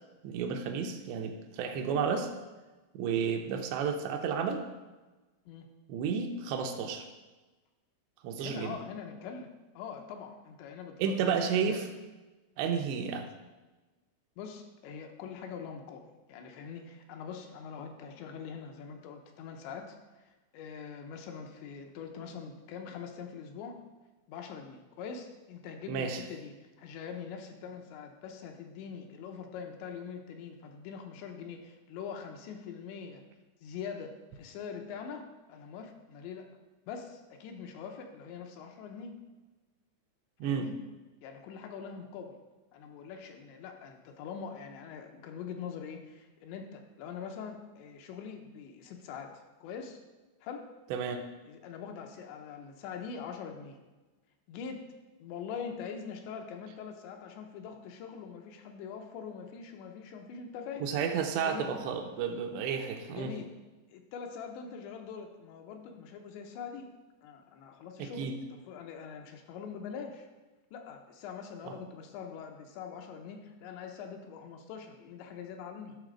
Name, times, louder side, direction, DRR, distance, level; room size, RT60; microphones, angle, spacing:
voice 1, 0.2-2.3 2.9-4.6 5.9-7.1 8.2-8.8 11.0-11.9 12.6-13.3 25.9-26.2 40.4-40.7 50.9-51.2 60.8-63.3 68.0-68.3 71.6-71.7, right 6 dB, 80° right, 4 dB, 2.8 m, -32 dB
voice 2, 8.4-9.5 9.8-11.8 14.4-23.8 24.3-33.2 33.6-36.5 36.9-39.2 40.4-40.7 41.2-42.4 42.7-50.0 50.4-50.7 51.4-53.8 54.5-54.9 55.2-60.9 61.4-61.8 63.1-63.5 63.9-66.9 67.2-70.3 70.7-76.0, left 6 dB, 80° left, 3 dB, 3.0 m, -43 dB
12.0 x 4.1 x 6.2 m, 1.2 s
omnidirectional pair, 5.2 m